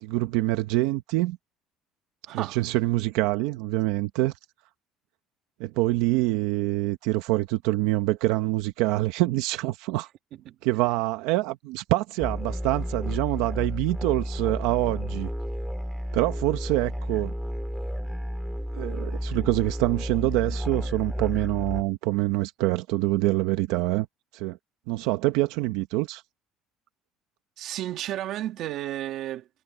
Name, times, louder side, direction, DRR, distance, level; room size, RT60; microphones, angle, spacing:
voice 1, 0.0-1.4 2.3-4.3 5.6-10.1 10.6-15.3 16.1-17.3 18.7-24.1 24.3-24.6 24.9-26.2, right 18 dB, 85° right, 1.0 m, -25 dB
voice 2, 2.3-2.6 10.3-10.6 27.6-29.5, right 13 dB, 50° right, 2.4 m, -32 dB
sound 1, 12.2-21.8, equal, ahead, 2.7 m, -32 dB
cardioid pair, 165°, 0 cm